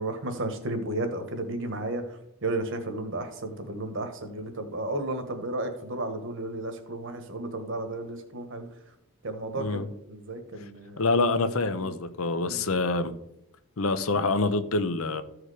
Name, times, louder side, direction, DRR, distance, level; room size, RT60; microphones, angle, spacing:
voice 1, 0.0-2.0 2.4-8.6 9.2-9.8 10.1-11.0 11.8-11.9 12.4-12.6, right 2 dB, 60° right, 7 dB, 1.4 m, -33 dB
voice 2, 9.6-9.9 11.0-13.1 13.8-15.2, left 3 dB, 70° left, 12 dB, 0.8 m, -26 dB
14.0 x 4.9 x 4.9 m, 0.81 s
head